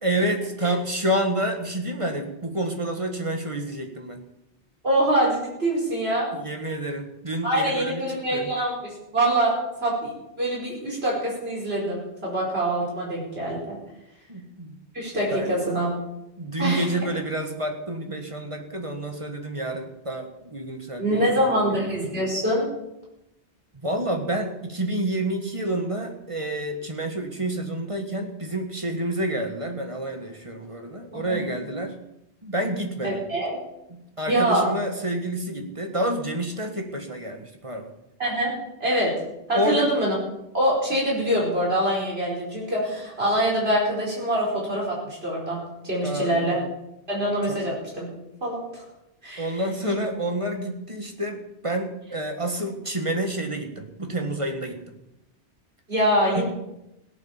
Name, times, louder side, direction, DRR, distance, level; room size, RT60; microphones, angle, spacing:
voice 1, 0.0-4.2 6.3-8.5 14.3-14.8 15.3-15.6 16.4-21.7 23.8-32.0 32.4-33.2 33.9-37.9 39.5-39.9 46.0-46.7 47.5-47.6 49.4-54.9 56.4-56.5, right 1 dB, 30° right, 4 dB, 1.7 m, -29 dB
voice 2, 4.8-6.3 7.4-8.7 9.1-9.6 9.8-13.8 14.9-15.9 16.6-17.1 21.0-22.7 31.1-31.4 33.0-33.6 34.3-34.7 38.2-38.5 38.8-39.1 39.5-40.1 40.5-45.0 45.2-46.6 47.1-48.1 48.4-48.8 49.2-49.5 49.8-50.0 55.9-56.4, right 1 dB, 65° right, -3 dB, 5.5 m, -24 dB
16.5 x 8.9 x 7.3 m, 0.87 s
omnidirectional pair, 1.1 m